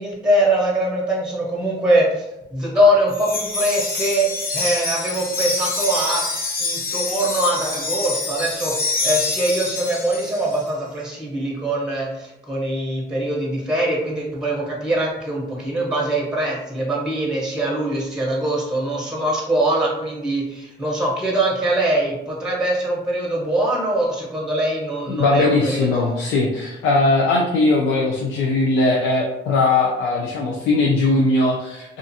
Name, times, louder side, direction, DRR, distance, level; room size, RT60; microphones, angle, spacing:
voice 1, 0.0-6.2 6.6-26.2, right 1 dB, 5° right, -3 dB, 0.7 m, -22 dB
Wind chime, 3.1-10.6, left 3 dB, 45° left, 0.7 m, -26 dB
voice 2, 25.1-32.0, left 3 dB, 80° left, -2 dB, 0.5 m, -19 dB
2.4 x 2.4 x 2.6 m, 0.90 s
cardioid pair, 90°, 20 cm